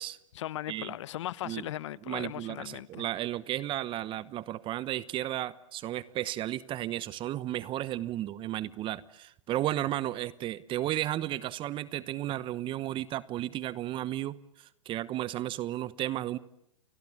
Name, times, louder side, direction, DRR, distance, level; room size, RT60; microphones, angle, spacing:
voice 1, 0.3-3.0, left 13 dB, 65° left, 1.1 m, -38 dB
voice 2, 2.1-16.4, right 13 dB, 30° right, 1.0 m, -34 dB
30.0 x 22.0 x 8.5 m
hypercardioid pair, 110°, 17 cm